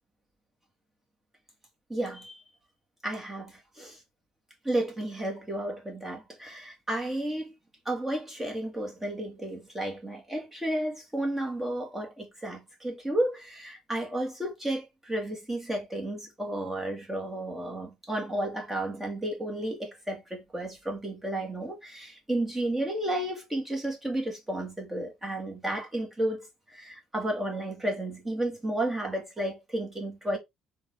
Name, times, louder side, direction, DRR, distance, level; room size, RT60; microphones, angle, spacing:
voice 1, 1.9-2.4 3.0-4.0 4.6-7.5 7.8-30.4, right 1 dB, 10° right, 1.7 m, -32 dB
3.8 x 2.6 x 2.8 m
supercardioid pair, 75°, 2 cm